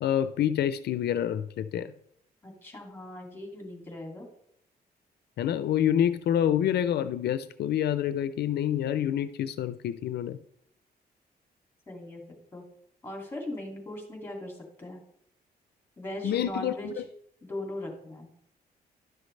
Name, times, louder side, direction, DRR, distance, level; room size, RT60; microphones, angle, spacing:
voice 1, 0.0-1.9 5.4-10.4 16.2-17.0, left 10 dB, 75° left, 12 dB, 0.4 m, -27 dB
voice 2, 2.4-4.3 11.9-12.2 12.5-12.6 13.0-15.0 16.0-16.9 17.4-18.3, left 1 dB, 15° left, 1 dB, 2.4 m, -39 dB
11.0 x 6.3 x 3.2 m, 0.71 s
cardioid pair, 115°, 17 cm